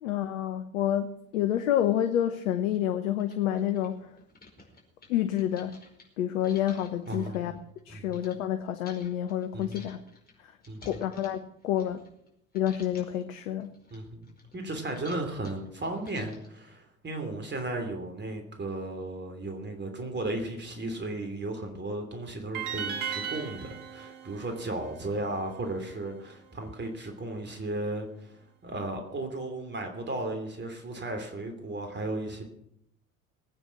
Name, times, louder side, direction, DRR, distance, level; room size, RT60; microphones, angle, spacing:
voice 1, 0.0-4.0 5.1-5.8 6.2-7.5 7.9-10.0 10.4-10.5 10.8-12.0 12.5-13.7, left 11 dB, 70° left, 9 dB, 1.0 m, -28 dB
sound 1, 2.1-2.2 2.7-2.8 3.1-8.4 8.8-12.3 12.5-13.2 13.6-16.6, left 2 dB, 20° left, 5.1 m, -53 dB
voice 2, 7.1-7.4 7.9-8.0 9.5-9.8 10.7-11.0 13.9-14.3 14.5-32.4, right 2 dB, 25° right, 4 dB, 3.2 m, -35 dB
sound 2, 22.5-25.7, right 7 dB, 55° right, 1.9 m, -37 dB
20.5 x 9.1 x 6.0 m, 0.77 s
figure-of-eight pair, 60°, 41 cm